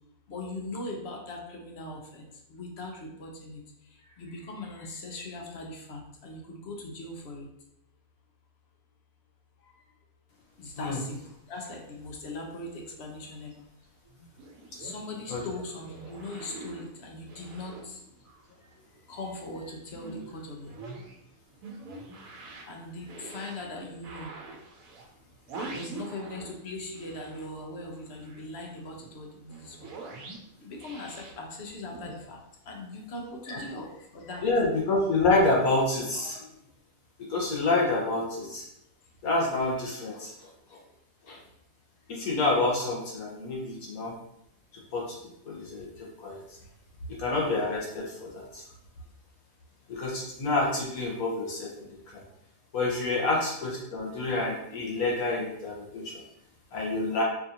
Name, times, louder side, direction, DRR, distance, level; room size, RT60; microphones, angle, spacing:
voice 1, 0.3-3.6 4.1-7.5 9.6-9.7 10.6-11.2 11.5-13.6 14.8-18.0 19.1-20.8 22.7-24.3 25.6-29.3 29.6-29.9 30.6-32.4 32.7-34.5, left 2 dB, 55° left, 1 dB, 0.9 m, -40 dB
sound 1, 14.0-18.7 19.0-26.6 26.9-32.1, right 3 dB, 80° right, 1.1 m, -45 dB
voice 2, 34.4-36.5 37.3-38.6 39.2-40.8 41.3-41.4 42.1-44.1 44.9-45.2 45.4-46.4 47.2-48.6 49.9-52.2 52.7-56.2 56.7-57.2, left 2 dB, 90° left, -3 dB, 1.5 m, -28 dB
4.8 x 2.5 x 2.7 m, 0.79 s
omnidirectional pair, 1.5 m